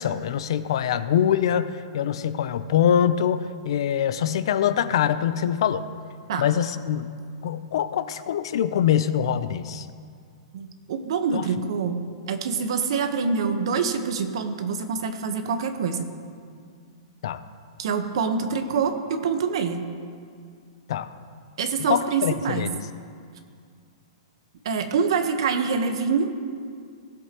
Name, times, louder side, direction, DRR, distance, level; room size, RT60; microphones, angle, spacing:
voice 1, 0.0-5.9 6.4-7.2 7.4-9.9 11.3-11.5 17.2-17.4 20.9-21.1 21.8-22.9, left 9 dB, 60° left, 13 dB, 0.5 m, -24 dB
voice 2, 10.5-12.0 12.3-16.1 17.8-19.9 21.6-22.7 24.6-26.3, right 5 dB, 60° right, 7 dB, 1.1 m, -25 dB
18.5 x 8.0 x 3.0 m, 2.2 s
hypercardioid pair, 165°, 3 cm